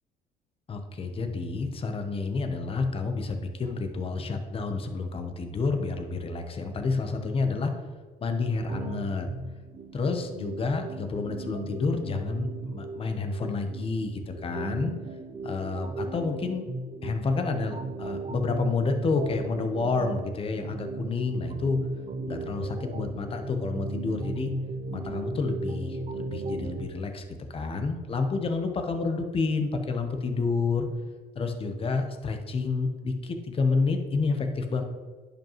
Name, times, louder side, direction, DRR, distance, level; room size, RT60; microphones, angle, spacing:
voice 1, 0.7-7.7 8.2-9.3 9.9-14.9 15.4-16.6 17.0-21.8 22.3-24.5 24.9-27.2 27.5-30.9 31.3-34.8, left 4 dB, 35° left, 6 dB, 0.9 m, -29 dB
sound 1, 8.7-26.8, right 2 dB, 35° right, 0.7 m, -37 dB
10.5 x 5.2 x 3.1 m, 1.4 s
cardioid pair, 110°, 17 cm